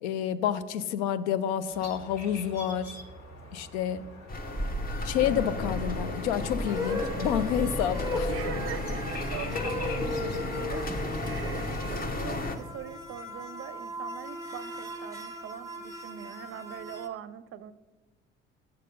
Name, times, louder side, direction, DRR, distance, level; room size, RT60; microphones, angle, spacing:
voice 1, 0.0-2.9 3.5-4.0 5.0-8.3, left 9 dB, 80° left, 14 dB, 0.5 m, -29 dB
sound 1, 1.7-10.4, left 1 dB, 50° left, 1.6 m, -45 dB
sound 2, 4.3-12.6, left 1 dB, 25° left, 0.9 m, -33 dB
sound 3, 6.6-17.1, left 2 dB, 10° right, 0.9 m, -37 dB
voice 2, 8.3-17.7, right 10 dB, 40° right, 16 dB, 0.5 m, -42 dB
6.7 x 6.6 x 5.3 m, 1.3 s
hypercardioid pair, 60°, 34 cm